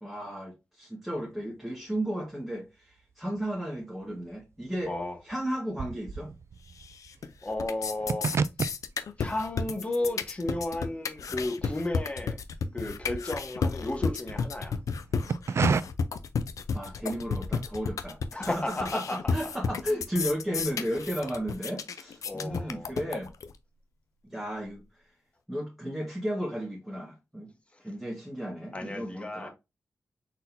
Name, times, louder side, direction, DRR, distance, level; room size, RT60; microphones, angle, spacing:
voice 1, 0.0-4.9 5.2-6.3 16.7-23.3 24.2-24.8 25.5-27.5 27.8-29.5, equal, 5° right, 1.4 m, -34 dB
sound 1, 3.0-3.8 4.0-12.3 12.6-14.4 15.0-15.8, right 5 dB, 55° right, 0.3 m, -33 dB
voice 2, 4.9-5.2 7.4-8.3 9.2-12.4 12.7-14.8 18.3-19.3 22.2-22.9 28.7-29.5, left 2 dB, 20° left, 1.1 m, -33 dB
sound 2, 6.8-7.3 7.5-23.5, left 5 dB, 80° left, 0.5 m, -32 dB
4.1 x 4.0 x 2.6 m
wide cardioid pair, 100°, 6 cm